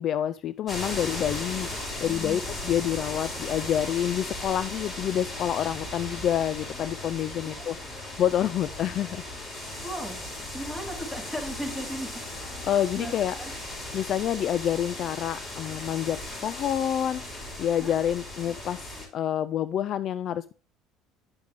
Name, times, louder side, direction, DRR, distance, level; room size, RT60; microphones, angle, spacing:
voice 1, 0.0-9.2 12.6-13.4 13.9-18.8 19.1-20.5, left 10 dB, 55° left, 15 dB, 0.4 m, -28 dB
sound 1, 0.7-19.1, left 1 dB, 30° left, 5.2 m, -37 dB
voice 2, 2.1-2.4 7.5-7.7 9.8-10.2 10.5-12.2 12.6-13.1 13.4-13.5 17.8-17.9, equal, 15° left, 1 dB, 3.5 m, -36 dB
9.7 x 6.4 x 3.5 m, 0.35 s
supercardioid pair, 85°, 0 cm